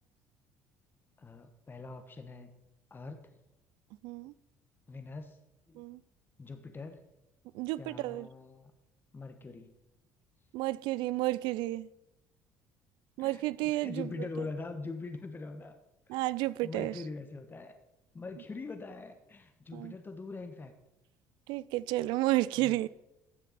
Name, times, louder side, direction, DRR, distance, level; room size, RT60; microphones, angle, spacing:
voice 1, 1.2-2.5 2.9-3.2 4.9-5.4 5.7-5.8 6.4-7.0 7.8-8.7 9.1-9.7 13.2-15.8 16.1-16.2 16.6-17.8 18.1-20.7 22.6-22.9, left 3 dB, 25° left, 7 dB, 1.2 m, -43 dB
voice 2, 4.0-4.3 5.7-6.0 7.5-8.3 10.5-11.9 13.2-14.1 16.1-16.9 19.7-19.9 21.5-22.9, right 17 dB, 75° right, 20 dB, 0.4 m, -31 dB
13.5 x 7.5 x 4.1 m, 0.91 s
supercardioid pair, 75°, 8 cm